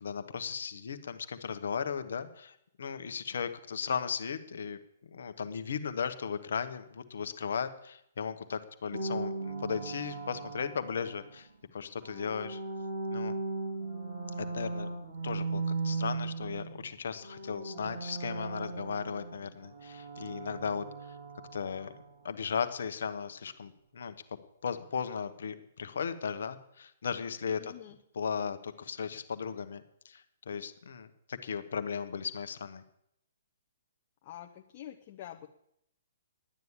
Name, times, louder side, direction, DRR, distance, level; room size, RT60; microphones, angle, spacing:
voice 1, 0.0-4.8 5.1-11.5 11.7-12.6 13.1-13.3 14.4-14.9 15.2-21.1 21.5-21.9 22.2-24.1 24.6-27.7 28.1-32.8, left 6 dB, 65° left, 9 dB, 1.1 m, -36 dB
sound 1, 8.9-11.4 11.9-16.8 17.1-22.0, right 3 dB, 65° right, 4.6 m, -37 dB
voice 2, 27.6-28.0 34.2-35.5, left 12 dB, 40° left, 1 dB, 0.9 m, -46 dB
11.5 x 9.4 x 7.3 m, 0.77 s
figure-of-eight pair, 125°, 0 cm